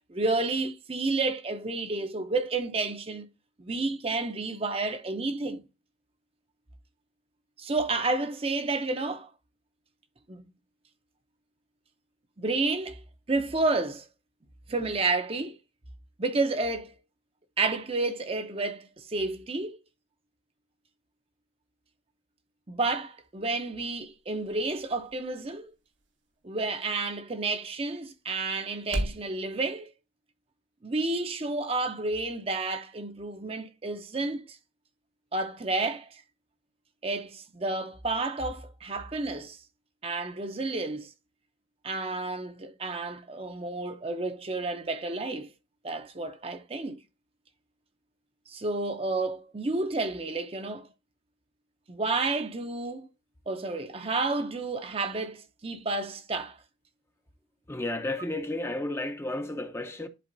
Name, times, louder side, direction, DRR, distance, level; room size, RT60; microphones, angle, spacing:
voice 1, 0.0-3.2 3.6-5.6 7.6-9.3 10.3-10.4 12.4-13.0 13.3-14.1 14.7-15.6 16.2-17.0 17.6-19.8 22.7-25.7 26.4-29.9 30.8-34.6 35.3-36.2 37.0-39.6 40.0-41.1 41.8-45.5 45.8-47.0 48.5-50.9 51.9-53.1 53.5-56.6, right 3 dB, 30° right, 0.6 m, -30 dB
sound 1, 23.0-29.3, right 1 dB, 75° right, 1.4 m, -41 dB
voice 2, 57.7-60.1, left 2 dB, 15° left, 0.6 m, -32 dB
11.0 x 4.2 x 2.6 m
head